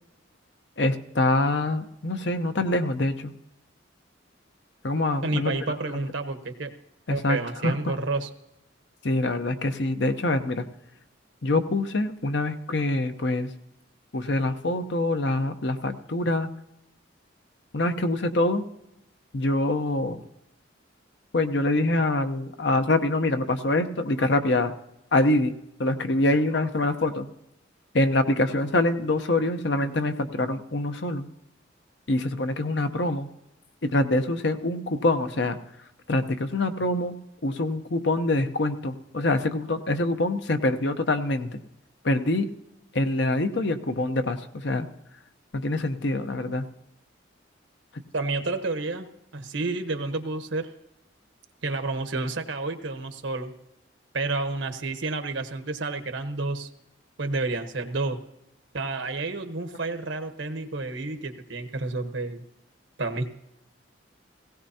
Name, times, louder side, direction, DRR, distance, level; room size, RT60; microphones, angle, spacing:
voice 1, 0.8-3.3 4.8-5.6 7.1-7.9 9.0-10.7 11.4-13.5 14.1-16.5 17.7-18.6 19.3-20.2 21.3-24.7 25.1-25.5 25.8-27.3 27.9-31.3 32.1-33.3 33.8-35.6 36.1-37.1 37.4-41.6 42.0-42.5 42.9-44.9 45.5-46.7, left 2 dB, 60° left, 8 dB, 0.8 m, -25 dB
voice 2, 5.2-6.7 7.1-8.3 48.1-50.7 51.6-53.5 54.1-56.7 57.2-58.2 58.7-62.4 63.0-63.3, right 3 dB, 70° right, 7 dB, 1.1 m, -30 dB
18.0 x 16.5 x 2.8 m, 0.88 s
head